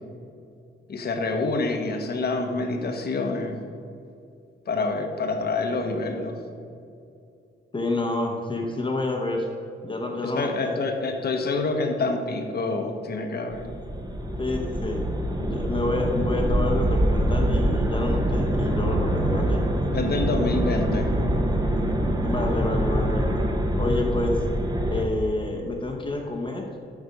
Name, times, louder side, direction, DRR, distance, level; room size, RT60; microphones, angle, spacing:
voice 1, 0.9-3.5 4.7-6.4 10.2-13.7 19.9-21.1, left 3 dB, 50° left, 5 dB, 1.1 m, -27 dB
voice 2, 7.7-9.5 9.8-10.8 14.4-15.0 15.4-19.6 22.1-23.3 23.8-24.4 24.9-26.7, left 2 dB, 25° left, 1 dB, 0.9 m, -28 dB
sound 1, 13.5-25.0, right 1 dB, 20° right, 0.8 m, -25 dB
8.3 x 6.1 x 5.2 m, 2.5 s
cardioid pair, 125°, 21 cm